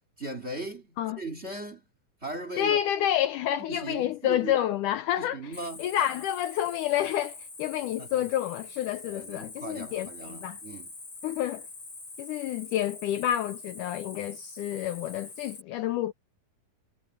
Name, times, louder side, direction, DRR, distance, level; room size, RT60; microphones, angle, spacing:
voice 1, 0.2-1.8 2.2-2.8 3.7-4.6 5.2-5.9 8.0-8.2 9.1-10.9, right 2 dB, 20° right, 2.3 m, -38 dB
voice 2, 2.6-5.5 5.8-10.6 11.2-11.7 12.2-16.1, left 12 dB, 75° left, 2.0 m, -29 dB
Cricket, 5.5-15.6, left 3 dB, 35° left, 7.5 m, -44 dB
omnidirectional pair, 4.1 m